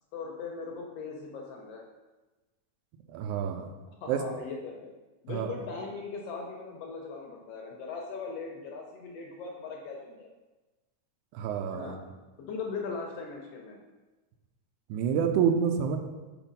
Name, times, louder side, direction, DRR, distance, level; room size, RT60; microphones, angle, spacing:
voice 1, 0.1-1.8 4.0-4.9 5.2-10.3 11.7-12.0 12.5-13.8, left 4 dB, 75° left, 1 dB, 1.4 m, -39 dB
voice 2, 3.1-3.7 4.1-4.2 5.3-5.5 11.3-12.0 14.9-16.0, right 8 dB, 85° right, 6 dB, 2.0 m, -28 dB
5.0 x 4.5 x 5.1 m, 1.2 s
omnidirectional pair, 3.5 m